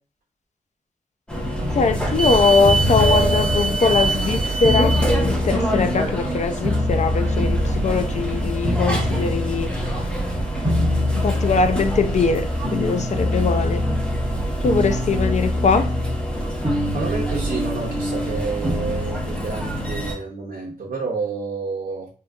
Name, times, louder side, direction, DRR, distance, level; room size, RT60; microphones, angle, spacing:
sound 1, 1.3-20.2, right 2 dB, 5° left, 0.8 m, -26 dB
sound 2, 1.6-20.1, left 1 dB, 20° right, 1.0 m, -25 dB
voice 1, 1.7-9.7 10.6-10.7 11.1-13.8 14.6-15.8, left 5 dB, 50° left, 0.4 m, -21 dB
voice 2, 16.9-22.1, right 4 dB, 80° right, 0.6 m, -29 dB
3.7 x 2.6 x 2.3 m
wide cardioid pair, 120°, 15 cm